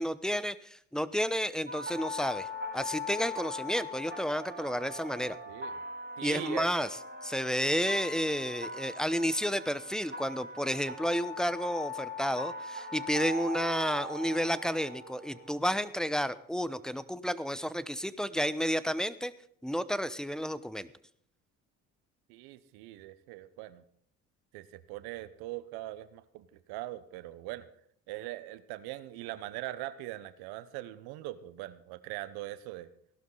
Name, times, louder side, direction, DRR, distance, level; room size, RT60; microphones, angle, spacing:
voice 1, 0.0-2.5 2.7-5.4 6.2-6.9 7.2-19.3 19.6-20.9, equal, ahead, 15 dB, 0.9 m, -31 dB
sound 1, 1.7-15.6, left 2 dB, 30° right, 2.7 m, -41 dB
voice 2, 5.5-5.8 6.2-6.7 22.3-23.8 24.5-27.6 28.1-32.9, right 16 dB, 75° right, 14 dB, 1.0 m, -41 dB
17.0 x 12.0 x 4.0 m, 0.66 s
hypercardioid pair, 60°, 37 cm